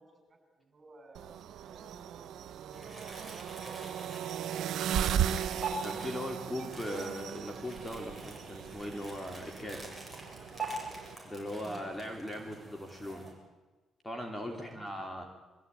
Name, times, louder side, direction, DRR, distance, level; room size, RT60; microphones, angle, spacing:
voice 1, 0.0-3.4 3.7-4.4 11.6-11.8 14.5-15.2, right 2 dB, 40° right, 5 dB, 7.4 m, -58 dB
sound 1, 1.1-11.1, right 9 dB, 75° right, 0.9 m, -37 dB
sound 2, 2.7-13.3, right 2 dB, 5° right, 7.7 m, -44 dB
voice 2, 5.8-10.0 11.2-13.4 14.0-15.3, left 1 dB, 10° left, 3 dB, 3.3 m, -39 dB
23.5 x 15.0 x 9.3 m, 1.2 s
cardioid pair, 90°, 0 cm